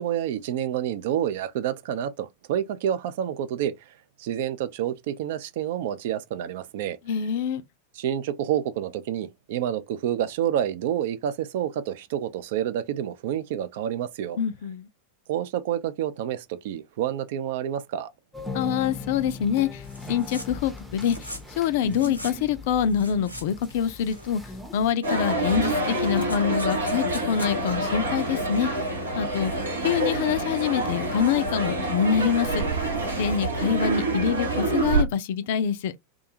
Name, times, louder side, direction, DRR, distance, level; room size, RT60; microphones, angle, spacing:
voice 1, 0.0-3.9 4.2-7.0 7.9-14.4 15.3-18.1, right 10 dB, 50° right, 0.3 m, -28 dB
voice 2, 7.1-7.6 14.4-14.9 18.5-24.4 24.7-28.7 29.1-29.5 29.8-32.7 33.1-35.9, left 8 dB, 50° left, 0.3 m, -25 dB
sound 1, 18.3-24.9, left 2 dB, ahead, 0.6 m, -39 dB
sound 2, 19.8-20.5 20.8-21.6 21.9-22.4 22.8-23.7 24.1-24.7 25.1-25.3 25.5-27.5, equal, 85° left, 0.7 m, -41 dB
sound 3, 25.0-35.0, right 2 dB, 75° right, 0.9 m, -27 dB
2.4 x 2.3 x 2.8 m
figure-of-eight pair, 90°, 0 cm